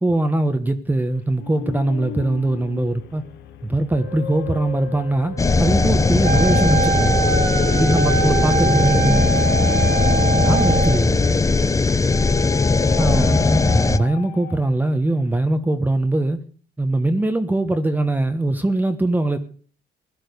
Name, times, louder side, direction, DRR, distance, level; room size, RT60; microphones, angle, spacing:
voice 1, 0.0-3.2 3.6-7.2 7.7-9.2 10.4-11.2 12.8-16.4 16.8-19.4, right 2 dB, 10° right, 1.2 m, -21 dB
sound 1, 1.4-11.6 12.1-14.9, left 8 dB, 80° left, 1.8 m, -35 dB
sound 2, 5.4-14.0, left 3 dB, 20° left, 0.9 m, -18 dB
Wind instrument woodwind instrument, 6.2-11.0, right 6 dB, 80° right, 3.0 m, -23 dB
voice 2, 7.9-8.2 8.7-9.3 9.6-10.4 11.8-13.0, left 3 dB, 45° left, 4.0 m, -38 dB
16.5 x 11.5 x 6.8 m
cardioid pair, 110°, 17 cm